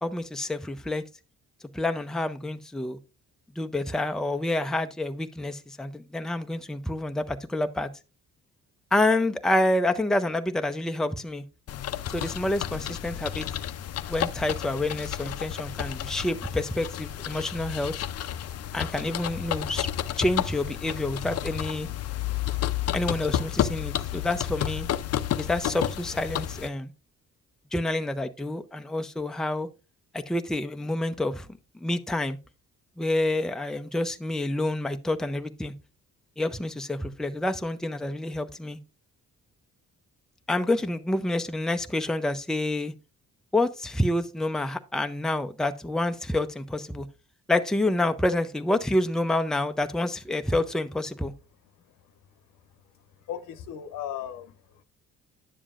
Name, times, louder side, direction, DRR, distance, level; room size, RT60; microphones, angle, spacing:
voice 1, 0.0-1.0 1.7-3.0 3.6-7.9 8.9-11.4 12.1-13.5 14.1-17.9 18.7-19.9 20.2-21.9 22.9-24.9 25.4-26.9 27.7-29.7 30.1-31.5 31.8-32.4 33.0-35.7 36.4-38.8 40.5-42.9 43.5-47.1 47.5-51.3, left 1 dB, ahead, 0.5 m, -28 dB
sound 1, 11.7-26.7, left 11 dB, 55° left, 0.5 m, -31 dB
voice 2, 53.3-54.8, left 10 dB, 80° left, 0.9 m, -37 dB
10.0 x 7.2 x 2.4 m
cardioid pair, 90°, 30 cm